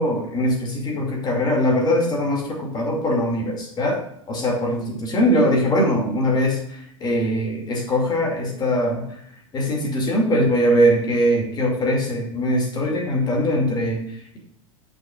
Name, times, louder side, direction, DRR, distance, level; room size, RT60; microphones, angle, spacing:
voice 1, 0.0-4.0 4.3-9.0 9.5-14.4, equal, 25° left, -1 dB, 2.4 m, -21 dB
9.2 x 6.3 x 2.5 m, 0.73 s
figure-of-eight pair, 95°, 17 cm